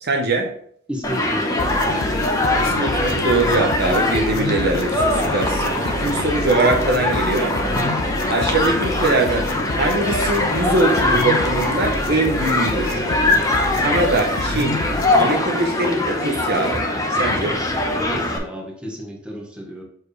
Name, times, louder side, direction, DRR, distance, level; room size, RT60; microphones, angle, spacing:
voice 1, 0.0-0.5 2.6-7.5 8.3-13.1 13.7-14.8 15.2-16.8 17.1-17.6, right 2 dB, 50° right, 2 dB, 1.0 m, -22 dB
voice 2, 0.9-1.9 18.0-19.8, equal, 5° right, -1 dB, 1.2 m, -32 dB
Human group actions, 1.0-18.4, left 1 dB, 15° left, 0.9 m, -22 dB
sound 1, 1.6-15.2, left 2 dB, 80° left, 0.7 m, -29 dB
6.9 x 4.5 x 3.2 m, 0.63 s
head